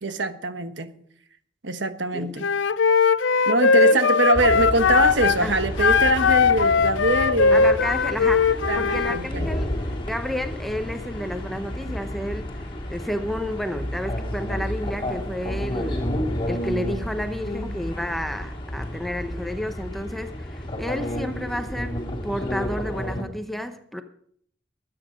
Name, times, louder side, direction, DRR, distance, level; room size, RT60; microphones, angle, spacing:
voice 1, 0.0-0.9 1.6-2.5 3.5-7.7 8.7-9.5, right 2 dB, 80° right, 1.2 m, -23 dB
Wind instrument woodwind instrument, 2.4-5.4 5.8-9.2, left 5 dB, 90° left, 0.6 m, -19 dB
sound 1, 4.3-23.2, left 1 dB, 25° left, 2.3 m, -31 dB
voice 2, 7.5-16.1 16.5-24.0, equal, ahead, 0.8 m, -31 dB
20.5 x 9.0 x 5.2 m
head